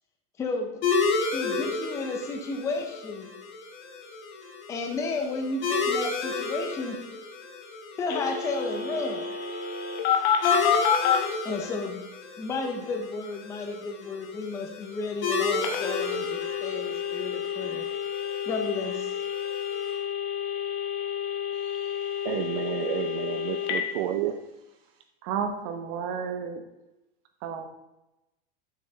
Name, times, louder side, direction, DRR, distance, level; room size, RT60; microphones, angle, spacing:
voice 1, 0.4-0.8 1.3-3.3 4.7-7.0 8.0-9.3 11.4-12.0 12.4-17.9 18.5-19.1, left 3 dB, 10° left, 3 dB, 0.5 m, -32 dB
sound 1, 0.8-20.0, left 4 dB, 70° left, 1.9 m, -33 dB
Telephone, 8.1-11.2 15.6-23.8, left 8 dB, 30° left, 0.9 m, -29 dB
voice 2, 21.5-24.4, right 11 dB, 65° right, 6 dB, 0.6 m, -31 dB
voice 3, 25.2-26.6 27.4-27.7, right 7 dB, 40° right, 7 dB, 0.9 m, -31 dB
7.2 x 6.1 x 3.8 m, 0.96 s
supercardioid pair, 160°, 31 cm